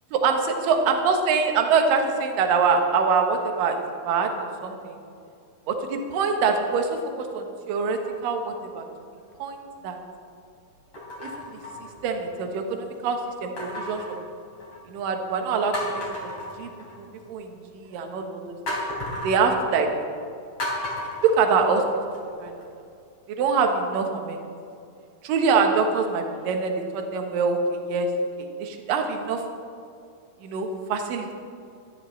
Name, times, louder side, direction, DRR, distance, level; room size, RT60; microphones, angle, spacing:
voice 1, 0.1-3.8 4.1-5.0 5.7-6.9 7.2-8.9 9.4-9.6 9.8-10.0 11.2-11.5 12.0-14.0 14.9-16.3 16.6-16.7 17.0-18.6 19.2-19.9 21.2-21.8 22.4-22.5 23.3-24.4 25.2-28.1 28.4-29.4 30.4-31.3, right 5 dB, 70° right, 4 dB, 2.8 m, -24 dB
sound 1, 8.0-8.5 9.2-9.3 10.9-12.4 13.6-14.9 15.3-15.4 15.7-17.2 18.7-19.4 20.6-22.2 22.6-22.7, left 1 dB, 40° left, 4.1 m, -34 dB
19.0 x 13.5 x 3.2 m, 2.4 s
omnidirectional pair, 4.2 m